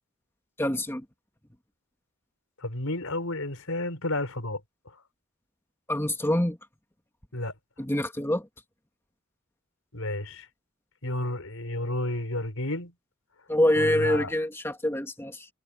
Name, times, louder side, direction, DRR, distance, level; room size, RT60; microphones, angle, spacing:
voice 1, 0.6-1.0 5.9-6.6 7.8-8.5 13.5-15.5, left 1 dB, 10° left, 2.4 m, -25 dB
voice 2, 2.6-4.6 7.3-7.5 9.9-10.5 11.0-12.9 13.7-14.3, left 1 dB, 75° left, 5.0 m, -31 dB
head